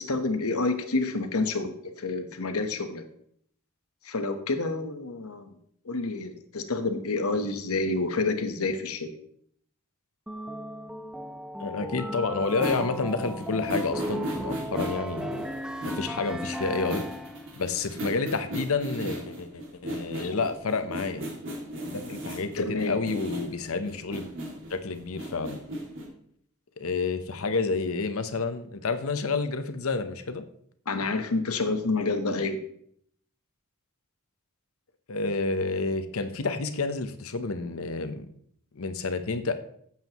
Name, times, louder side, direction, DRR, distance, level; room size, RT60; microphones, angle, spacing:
voice 1, 0.0-3.0 4.0-5.5 5.8-9.1 20.1-20.4 22.6-23.0 30.9-32.6, left 3 dB, 90° left, 7 dB, 1.1 m, -28 dB
sound 1, 10.3-17.5, equal, 5° right, 0.5 m, -36 dB
voice 2, 11.6-15.4 15.9-17.1 17.6-21.2 21.9-24.2 24.7-25.6 26.8-30.4 35.1-38.3 38.7-39.5, left 4 dB, 75° left, 9 dB, 0.8 m, -29 dB
sound 2, 12.5-26.1, equal, 60° right, 2.3 m, -37 dB
15.0 x 7.5 x 3.0 m, 0.66 s
head